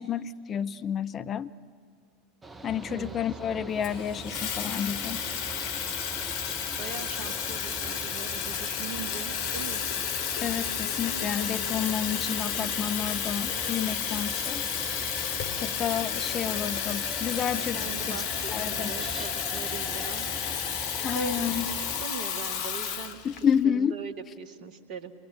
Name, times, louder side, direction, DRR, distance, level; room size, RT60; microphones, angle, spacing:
voice 1, 0.0-1.5 2.6-5.2 10.4-14.6 15.6-18.2 18.5-18.9 21.0-21.7 23.2-23.9, left 8 dB, 30° left, 12 dB, 0.7 m, -30 dB
Mechanical fan, 2.4-22.0, right 3 dB, 15° right, 1.0 m, -42 dB
voice 2, 2.9-3.2 6.8-9.9 17.7-20.3 21.0-23.2 23.6-25.1, right 6 dB, 45° right, 5 dB, 1.9 m, -40 dB
Water tap faucet / Fill (with liquid), 3.8-23.6, left 8 dB, 50° left, 1.4 m, -32 dB
27.5 x 21.0 x 8.3 m, 2.1 s
figure-of-eight pair, 80°, 0 cm